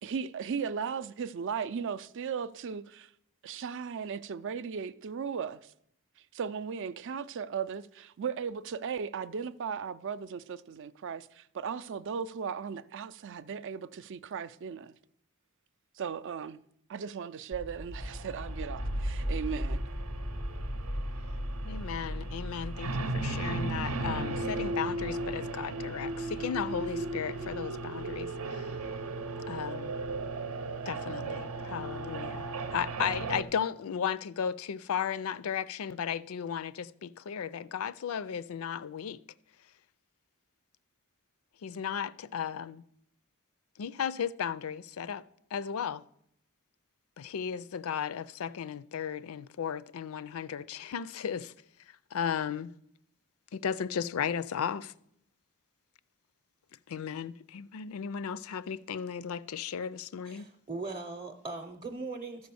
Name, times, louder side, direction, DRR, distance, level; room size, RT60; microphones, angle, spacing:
voice 1, 0.0-3.1 3.4-5.7 6.3-14.9 16.0-16.6 16.9-19.8, right 6 dB, 60° right, 0.4 m, -37 dB
sound 1, 17.5-28.2, equal, 5° left, 0.4 m, -38 dB
hawnted halo, 18.0-33.4, right 2 dB, 80° right, 0.8 m, -36 dB
voice 2, 21.6-28.7 29.5-30.0 30.9-39.2 41.6-42.8 43.8-45.2 45.5-46.0 47.2-51.5 52.1-52.7 53.5-54.9 56.9-60.5, left 7 dB, 70° left, 0.4 m, -35 dB
voice 3, 60.2-62.5, right 3 dB, 25° right, 0.7 m, -39 dB
13.0 x 5.2 x 6.9 m
head